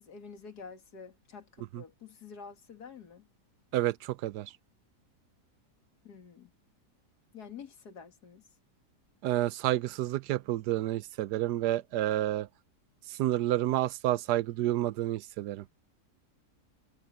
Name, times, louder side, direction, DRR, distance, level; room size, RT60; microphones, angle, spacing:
voice 1, 0.0-3.3 6.0-6.5 7.3-8.4, left 6 dB, 75° left, 2.7 m, -48 dB
voice 2, 3.7-4.5 9.2-12.5 13.2-15.6, right 14 dB, 85° right, 1.2 m, -29 dB
omnidirectional pair, 1.7 m